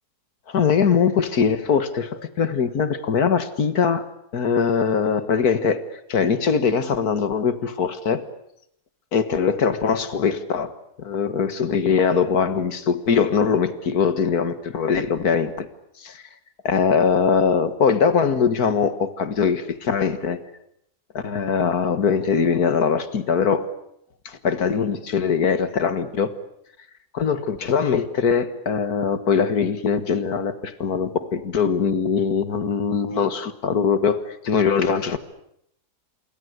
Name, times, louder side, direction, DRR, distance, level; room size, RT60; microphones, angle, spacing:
voice 1, 0.5-5.8 6.1-8.2 9.1-10.7 11.0-15.7 16.0-16.2 16.6-20.4 21.1-23.7 24.3-26.3 27.1-35.2, left 6 dB, 70° left, 13 dB, 2.1 m, -21 dB
27.5 x 23.0 x 8.1 m, 0.75 s
omnidirectional pair, 1.7 m